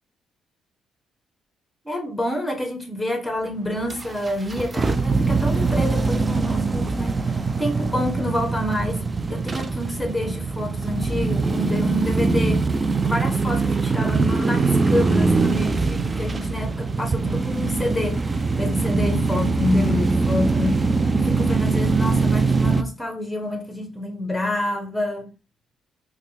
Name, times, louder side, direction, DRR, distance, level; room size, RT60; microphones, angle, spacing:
voice 1, 1.8-9.0 9.3-12.7 13.0-18.2 18.6-20.8 21.2-25.3, left 1 dB, 5° left, 1.0 m, -28 dB
sound 1, 3.8-22.8, right 3 dB, 25° right, 0.3 m, -22 dB
3.4 x 2.3 x 3.3 m
cardioid pair, 90°, 0 cm